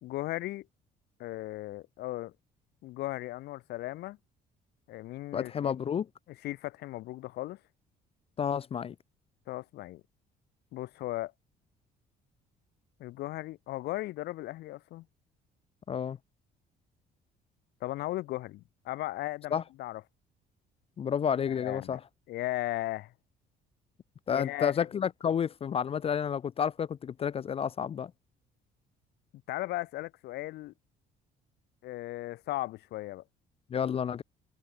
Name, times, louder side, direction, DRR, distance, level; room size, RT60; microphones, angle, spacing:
voice 1, 0.0-0.7 1.2-2.3 2.8-4.2 4.9-5.8 6.3-7.6 9.5-10.0 10.7-11.3 13.0-15.0 17.8-20.0 21.5-22.0 22.3-23.1 24.3-24.7 29.5-30.7 31.8-33.2, left 17 dB, 75° left, 1.2 m, -36 dB
voice 2, 5.3-6.1 8.4-8.9 15.9-16.2 19.5-19.6 21.0-22.0 24.3-28.1 33.7-34.2, left 8 dB, 35° left, 0.5 m, -30 dB
cardioid pair, 110°, 17 cm